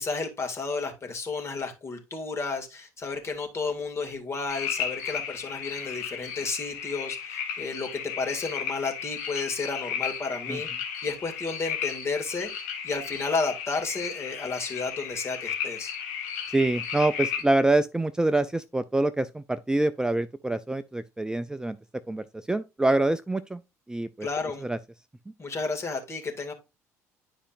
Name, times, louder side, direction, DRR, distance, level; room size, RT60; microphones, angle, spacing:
voice 1, 0.0-10.7 11.0-15.9 24.2-24.7 25.4-26.5, left 4 dB, 35° left, 2.3 m, -32 dB
sound 1, 4.5-17.4, left 8 dB, 75° left, 1.5 m, -34 dB
voice 2, 16.5-21.8 22.1-23.6 23.9-24.3 24.6-24.8, right 2 dB, 10° right, 0.4 m, -26 dB
9.9 x 5.1 x 2.5 m
hypercardioid pair, 55°, 8 cm